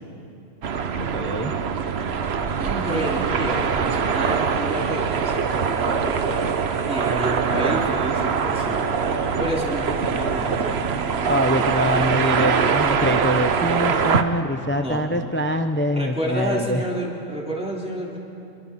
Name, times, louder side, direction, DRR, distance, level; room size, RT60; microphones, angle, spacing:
sound 1, 0.6-14.2, right 6 dB, 55° right, 1.0 m, -23 dB
voice 1, 1.0-1.5 11.2-16.8, equal, 15° left, 7 dB, 0.4 m, -24 dB
voice 2, 2.6-6.4 6.9-9.0 9.4-10.9 14.7-15.0 15.9-18.2, equal, 5° right, -3 dB, 2.8 m, -29 dB
28.5 x 22.0 x 4.2 m, 2.7 s
omnidirectional pair, 1.4 m